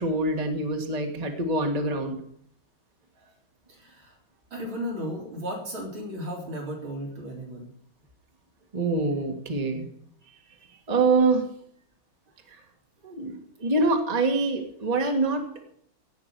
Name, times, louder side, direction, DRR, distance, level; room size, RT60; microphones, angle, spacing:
voice 1, 0.0-2.2 8.7-9.9 10.9-11.4 12.5-12.6 13.0-15.4, right 3 dB, 20° right, 4 dB, 1.6 m, -25 dB
voice 2, 3.7-4.2 4.5-7.7, equal, 75° right, -1 dB, 4.7 m, -35 dB
16.5 x 6.1 x 8.2 m, 0.67 s
omnidirectional pair, 2.2 m